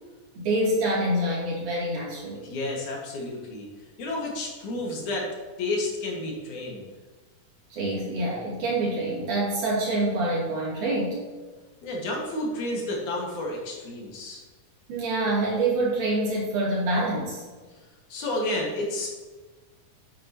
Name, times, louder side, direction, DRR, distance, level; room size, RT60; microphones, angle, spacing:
voice 1, 0.4-2.4 7.7-11.2 14.9-17.4, right 1 dB, 80° right, -6 dB, 4.4 m, -26 dB
voice 2, 2.4-3.7 4.0-5.3 5.6-6.9 11.8-14.4 18.1-19.1, left 1 dB, 75° left, -2 dB, 3.3 m, -31 dB
10.0 x 8.7 x 3.0 m, 1.3 s
omnidirectional pair, 3.5 m